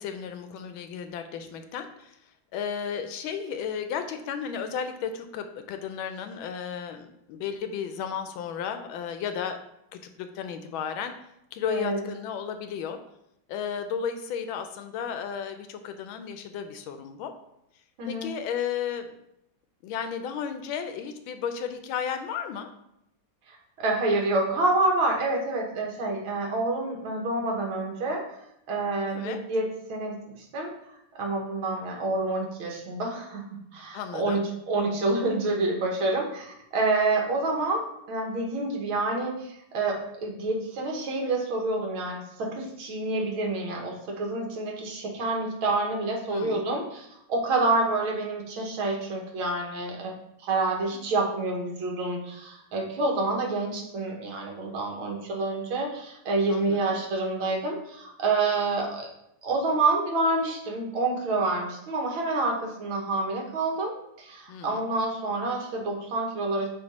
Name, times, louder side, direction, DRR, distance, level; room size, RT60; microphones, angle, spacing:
voice 1, 0.0-2.2 2.5-9.6 9.9-11.1 11.5-13.0 13.5-17.3 18.1-19.2 19.8-22.7 29.1-29.4 33.9-34.4 46.2-46.6 56.5-56.8 64.5-64.9, left 7 dB, 80° left, 8 dB, 1.3 m, -34 dB
voice 2, 11.7-12.0 18.0-18.3 23.5-28.2 28.7-30.2 30.5-30.7 31.2-50.1 50.4-59.1 59.4-66.7, right 2 dB, 80° right, 1 dB, 2.0 m, -28 dB
7.8 x 3.0 x 4.0 m, 0.79 s
omnidirectional pair, 2.3 m